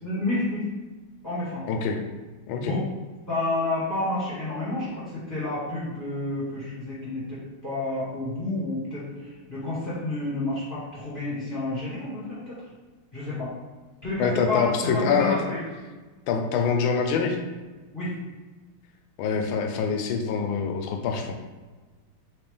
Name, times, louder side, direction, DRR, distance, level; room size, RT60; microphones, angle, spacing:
voice 1, 0.0-0.6 1.2-1.7 2.5-2.8 3.3-12.6 13.1-13.5 14.0-15.6 17.9-18.1 19.7-19.8, left 2 dB, 10° left, -11 dB, 1.1 m, -30 dB
voice 2, 1.7-2.0 2.5-2.7 14.2-15.5 16.3-17.4 19.2-21.3, left 5 dB, 80° left, 4 dB, 1.4 m, -25 dB
4.3 x 3.2 x 3.4 m, 1.3 s
omnidirectional pair, 2.4 m